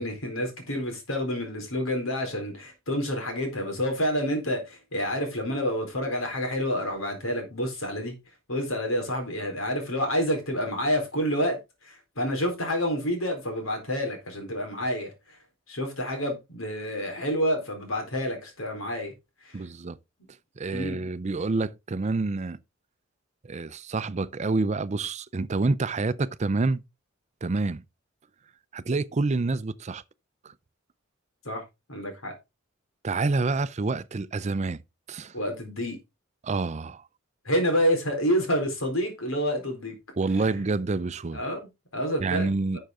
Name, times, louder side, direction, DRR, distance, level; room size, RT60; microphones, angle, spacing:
voice 1, 0.0-8.1 8.5-11.6 11.8-15.1 15.7-19.1 19.4-19.6 20.7-21.0 31.4-31.6 31.9-32.3 35.3-36.0 37.4-39.9 40.4-40.5 41.3-42.8, equal, 90° left, 4.2 m, -28 dB
voice 2, 19.5-20.0 20.6-22.6 23.4-26.8 27.4-27.8 28.7-30.0 30.4-30.5 33.0-34.8 35.1-35.3 36.4-37.0 40.2-41.4 42.2-42.8, right 3 dB, 35° right, 0.5 m, -27 dB
11.5 x 6.5 x 3.7 m
head